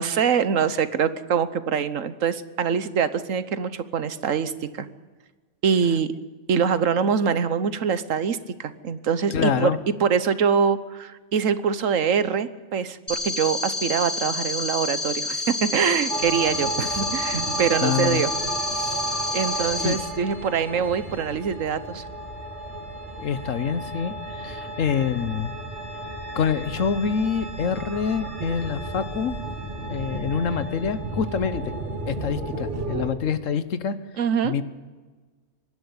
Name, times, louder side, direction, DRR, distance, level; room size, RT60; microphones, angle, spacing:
voice 1, 0.0-4.9 5.6-6.1 6.5-9.7 10.0-18.3 18.7-19.0 19.3-22.0 34.2-34.5, right 7 dB, 90° right, 13 dB, 1.4 m, -24 dB
voice 2, 9.3-9.8 17.8-18.2 19.5-20.0 23.2-25.5 26.3-29.4 29.9-31.7 32.1-34.0 34.4-34.6, left 7 dB, 80° left, 13 dB, 1.4 m, -26 dB
sound 1, 13.1-19.9, left 3 dB, 20° left, 5.7 m, -29 dB
sound 2, 16.1-33.1, right 2 dB, 65° right, 2.9 m, -33 dB
24.5 x 11.5 x 9.7 m, 1.4 s
omnidirectional pair, 1.3 m